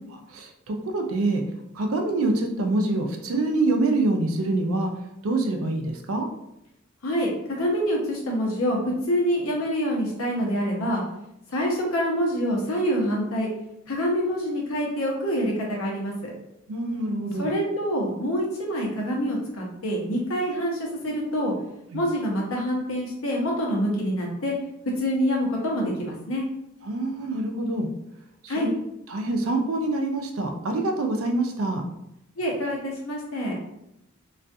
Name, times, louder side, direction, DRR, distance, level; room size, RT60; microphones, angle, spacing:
voice 1, 0.3-1.4 1.7-4.9 5.2-6.3 16.7-17.5 21.9-22.0 26.8-27.9 28.4-28.7 29.1-31.8, right 2 dB, 85° right, 3 dB, 0.4 m, -25 dB
voice 2, 7.0-11.0 11.5-13.5 13.9-16.3 17.4-21.5 21.9-24.5 25.0-26.4 28.5-28.7 32.4-33.6, equal, 90° left, -1 dB, 0.8 m, -26 dB
2.3 x 2.3 x 2.6 m, 0.82 s
head